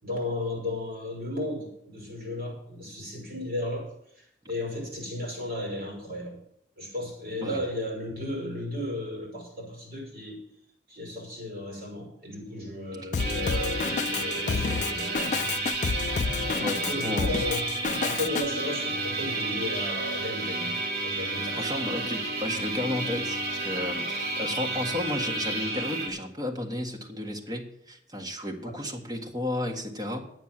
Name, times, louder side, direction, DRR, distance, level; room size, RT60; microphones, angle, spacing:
voice 1, 0.0-3.9 4.2-6.4 6.8-10.4 10.9-15.6 16.2-17.7 18.0-21.7 24.4-24.5 28.6-28.8, left 1 dB, 55° right, 0 dB, 5.7 m, -35 dB
Drum kit, 13.1-18.4, left 5 dB, 45° left, 0.4 m, -29 dB
sound 1, 13.2-26.1, right 2 dB, 75° right, 3.5 m, -31 dB
voice 2, 16.5-17.3 21.5-30.2, left 1 dB, 20° right, 1 dB, 1.6 m, -33 dB
9.4 x 9.3 x 7.5 m, 0.75 s
head